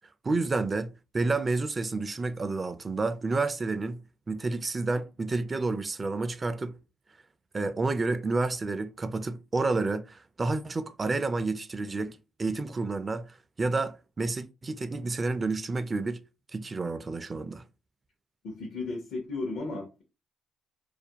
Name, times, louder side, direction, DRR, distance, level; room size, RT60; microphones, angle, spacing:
voice 1, 0.2-6.8 7.5-16.2 16.5-17.7, right 3 dB, 35° right, 0.3 m, -30 dB
voice 2, 18.4-20.0, left 3 dB, 75° left, 0.7 m, -34 dB
2.5 x 2.1 x 2.8 m
supercardioid pair, 60°, 0 cm